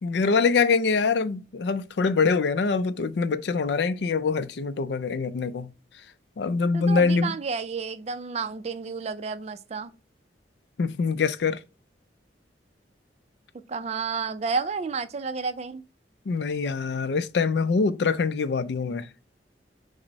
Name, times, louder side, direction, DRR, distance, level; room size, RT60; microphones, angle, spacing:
voice 1, 0.0-5.7 6.4-7.3 10.8-11.6 16.3-19.1, left 4 dB, 70° left, 0.4 m, -24 dB
voice 2, 6.7-9.9 13.7-15.8, right 5 dB, 35° right, 0.4 m, -31 dB
6.0 x 2.1 x 4.0 m
head